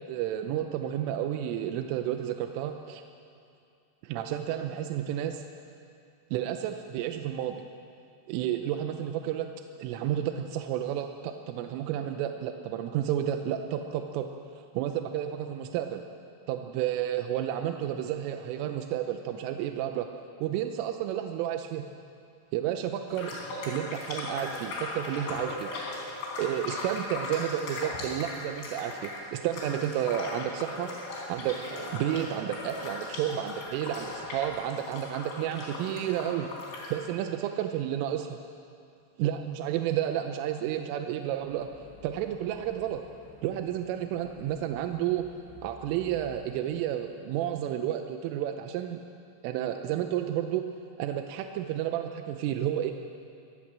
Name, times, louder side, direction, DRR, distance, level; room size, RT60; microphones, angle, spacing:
voice 1, 0.0-3.0 4.0-5.4 6.3-7.6 8.3-9.5 9.8-14.3 14.6-16.0 16.5-20.1 20.4-21.8 22.5-23.3 23.6-25.7 26.4-30.9 31.3-36.5 36.9-38.4 39.2-41.7 42.0-43.0 43.4-45.3 45.6-49.0 49.4-50.7 51.0-52.9, right 11 dB, 85° right, 6 dB, 3.4 m, -31 dB
sound 1, 23.1-36.9, left 2 dB, 65° left, 6.2 m, -38 dB
sound 2, 41.4-46.8, left 3 dB, 85° left, 10.0 m, -53 dB
24.0 x 17.5 x 7.5 m, 2.5 s
omnidirectional pair, 5.6 m